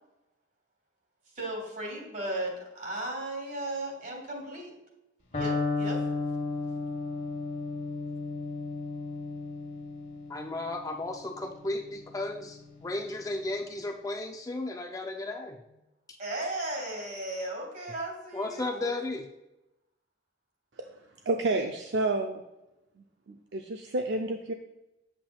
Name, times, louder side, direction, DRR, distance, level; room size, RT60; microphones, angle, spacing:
voice 1, 1.3-4.7 5.3-6.0 16.2-18.9, right 1 dB, 50° right, 0 dB, 2.8 m, -36 dB
Electric guitar, 5.3-13.2, left 3 dB, 40° left, 1.5 m, -34 dB
voice 2, 10.3-15.6 16.1-16.2 18.3-19.3, left 2 dB, 20° left, 3 dB, 0.4 m, -34 dB
voice 3, 21.3-22.4 23.3-24.5, right 2 dB, 65° right, 3 dB, 0.5 m, -29 dB
8.6 x 7.6 x 2.3 m, 0.93 s
head